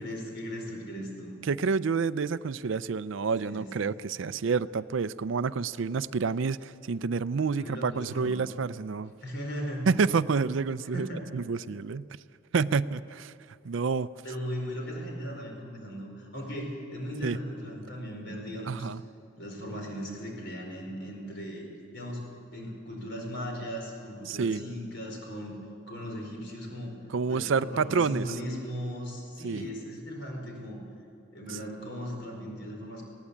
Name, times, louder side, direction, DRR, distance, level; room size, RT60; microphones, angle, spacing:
voice 1, 0.0-1.3 3.4-3.9 7.4-8.3 9.2-9.9 10.9-11.4 14.2-18.9 19.4-21.7 21.9-22.2 22.5-27.0 27.3-30.8 31.3-33.0, equal, 55° left, 1 dB, 4.8 m, -37 dB
voice 2, 1.5-9.1 9.9-11.1 11.3-12.1 12.5-13.3 13.6-14.1 17.2-17.4 18.7-19.0 24.3-24.6 27.1-28.3 29.4-29.6, right 5 dB, 65° right, 17 dB, 0.4 m, -28 dB
20.0 x 17.0 x 8.4 m, 2.5 s
head